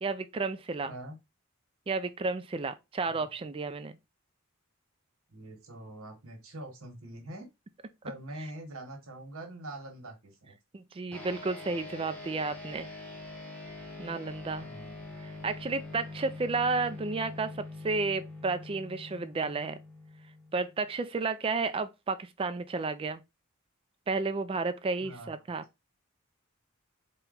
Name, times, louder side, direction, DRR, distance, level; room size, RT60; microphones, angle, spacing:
voice 1, 0.0-0.9 1.9-4.0 10.7-12.9 14.0-14.7 15.2-19.8 20.5-23.2 24.1-25.6, right 3 dB, 25° right, 0.3 m, -32 dB
voice 2, 0.8-1.2 3.2-3.3 5.3-7.5 8.0-10.5 14.6-15.1 25.0-25.4, right 1 dB, 80° right, 1.2 m, -44 dB
sound 1, 11.1-20.9, left 2 dB, 5° left, 0.8 m, -44 dB
4.2 x 2.2 x 3.8 m
head